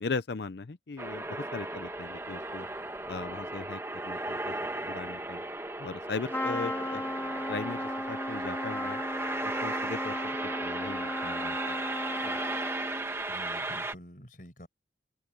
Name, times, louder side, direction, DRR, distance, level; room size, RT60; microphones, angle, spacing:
voice 1, 0.0-2.7 3.1-4.5 4.9-5.4 5.8-7.0 7.5-9.0 9.6-11.8 12.2-12.4, left 4 dB, 70° left, 0.6 m, -38 dB
sound 1, 1.0-14.0, right 2 dB, 15° right, 1.2 m, -36 dB
Trumpet, 6.3-13.2, left 1 dB, 10° left, 1.4 m, -36 dB
voice 2, 13.3-14.7, equal, 45° left, 6.2 m, -48 dB
head